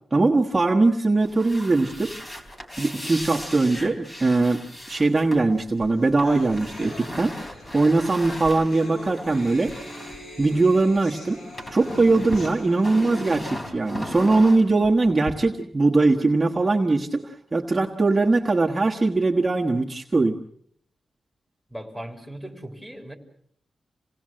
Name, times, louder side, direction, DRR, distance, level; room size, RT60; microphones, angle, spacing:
voice 1, 0.1-2.2 2.8-7.4 7.7-9.7 10.4-11.4 11.7-20.4, right 3 dB, 20° right, 0 dB, 1.4 m, -21 dB
sound 1, 1.2-11.0 11.3-15.3, equal, 25° left, 3.7 m, -37 dB
sound 2, 5.6-5.7 5.9-13.5, left 1 dB, 80° left, 7.8 m, -43 dB
voice 2, 21.7-23.1, right 1 dB, 5° left, 2 dB, 3.7 m, -38 dB
27.5 x 18.5 x 7.6 m, 0.66 s
wide cardioid pair, 150°, 0 cm